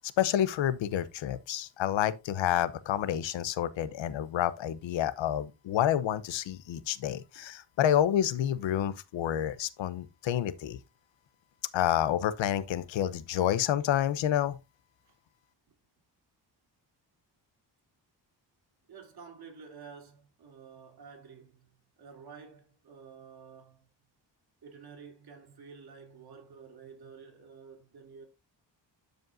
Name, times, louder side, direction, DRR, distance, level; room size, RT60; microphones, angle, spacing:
voice 1, 0.2-10.8 11.7-14.6, left 11 dB, 90° left, 0.9 m, -29 dB
voice 2, 18.9-21.7 22.0-23.8 24.6-28.2, right 5 dB, 55° right, 3.4 m, -50 dB
12.5 x 5.3 x 2.6 m
cardioid pair, 105°, 44 cm